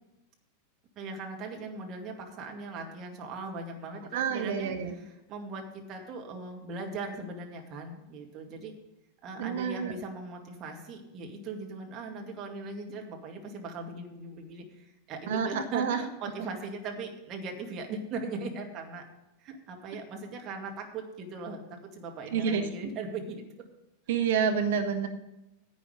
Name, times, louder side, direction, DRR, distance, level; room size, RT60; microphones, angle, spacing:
voice 1, 1.0-8.7 9.2-19.0 19.4-23.4, right 3 dB, 35° right, 2 dB, 2.2 m, -39 dB
voice 2, 4.1-4.9 9.4-9.9 15.3-16.0 22.3-22.6 24.1-25.1, right 7 dB, 55° right, 6 dB, 1.0 m, -28 dB
10.5 x 8.8 x 5.0 m, 0.96 s
figure-of-eight pair, 90°, 0 cm